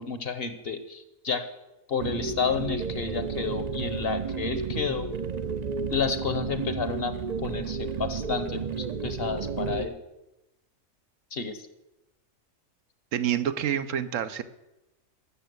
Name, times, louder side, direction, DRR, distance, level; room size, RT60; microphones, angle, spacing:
voice 1, 0.0-1.4 1.9-5.1 5.9-7.1 7.4-9.9 11.3-11.6, left 5 dB, 50° left, 11 dB, 1.1 m, -30 dB
sound 1, 2.0-9.9, right 5 dB, 45° right, 0.6 m, -32 dB
voice 2, 13.1-14.4, right 9 dB, 70° right, 11 dB, 1.1 m, -27 dB
12.5 x 7.2 x 8.1 m, 0.96 s
omnidirectional pair, 1.4 m